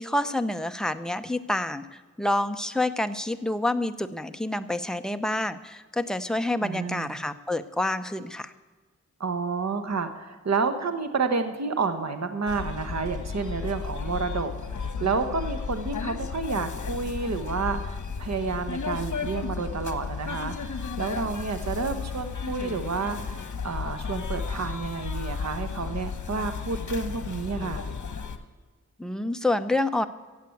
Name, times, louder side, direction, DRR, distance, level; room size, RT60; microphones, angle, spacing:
voice 1, 0.0-8.5 29.0-30.1, left 1 dB, ahead, 9 dB, 0.7 m, -28 dB
voice 2, 6.6-7.2 9.2-27.9, right 4 dB, 55° right, 8 dB, 1.3 m, -30 dB
sound 1, 12.5-28.4, left 5 dB, 70° left, 1.3 m, -34 dB
15.5 x 8.2 x 7.9 m, 1.4 s
wide cardioid pair, 100°, 31 cm